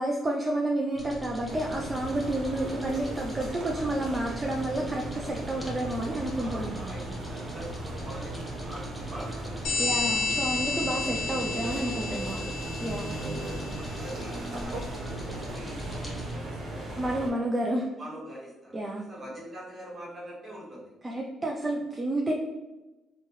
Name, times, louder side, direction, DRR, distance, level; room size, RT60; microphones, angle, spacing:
voice 1, 0.0-6.9 9.8-12.4 12.8-13.1 17.0-17.9 18.7-19.0 21.0-22.3, right 1 dB, 20° right, -1 dB, 0.3 m, -30 dB
sound 1, 0.9-16.3, right 1 dB, 10° left, 0.9 m, -42 dB
sound 2, 1.5-17.3, right 1 dB, 75° right, 0.9 m, -37 dB
voice 2, 3.4-3.9 5.3-5.4 5.7-5.8 6.4-9.7 10.9-11.2 12.1-12.6 13.2-17.2 18.0-18.8 19.1-20.9, right 1 dB, 40° right, -5 dB, 1.4 m, -44 dB
sound 3, 9.6-13.9, left 3 dB, 85° left, 0.6 m, -31 dB
3.2 x 2.2 x 2.9 m, 1.1 s
cardioid pair, 90°, 0 cm